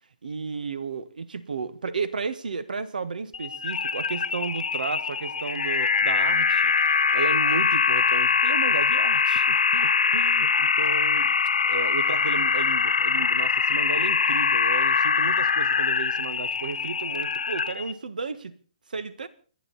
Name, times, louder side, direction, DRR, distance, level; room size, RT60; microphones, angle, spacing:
voice 1, 0.2-11.3 11.6-18.6 18.9-19.3, right 5 dB, 90° right, 1.7 m, -33 dB
sound 1, 3.3-17.9, left 5 dB, 75° left, 1.3 m, -23 dB
29.0 x 10.5 x 4.2 m
hypercardioid pair, 180°, 4 cm